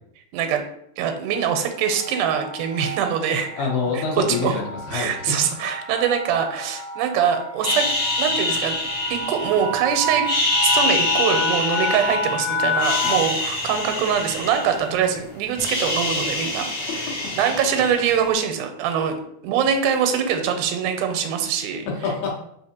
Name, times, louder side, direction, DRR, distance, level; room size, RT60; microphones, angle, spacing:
voice 1, 1.0-3.5 4.0-4.1 4.3-4.5 4.9-7.9 8.2-8.8 9.1-10.3 10.6-16.7 17.4-19.1 19.4-21.9, right 7 dB, 85° right, 6 dB, 2.1 m, -23 dB
sound 1, 1.3-13.4, left 2 dB, 35° right, 0.8 m, -30 dB
voice 2, 3.6-5.4 13.0-13.2 17.1-17.2 17.7-17.8 21.9-22.3, left 4 dB, 80° left, 0 dB, 2.3 m, -26 dB
sound 2, 7.6-9.8 10.2-12.4 12.7-15.1 15.4-18.2, left 2 dB, 40° left, 1.5 m, -25 dB
4.6 x 3.5 x 2.8 m, 0.73 s
omnidirectional pair, 3.6 m